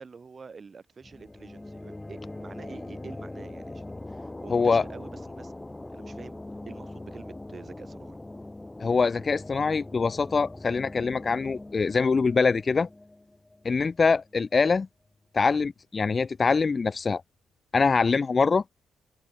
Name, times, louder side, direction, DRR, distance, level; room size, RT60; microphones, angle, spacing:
voice 1, 0.0-8.2, right 5 dB, 35° right, 6.8 m, -47 dB
sound 1, 1.0-14.4, left 2 dB, 15° left, 7.8 m, -42 dB
voice 2, 4.5-4.8 8.8-12.9 13.6-14.9 15.3-17.2 17.7-18.6, left 4 dB, 35° left, 0.8 m, -24 dB
cardioid pair, 90°, 0 cm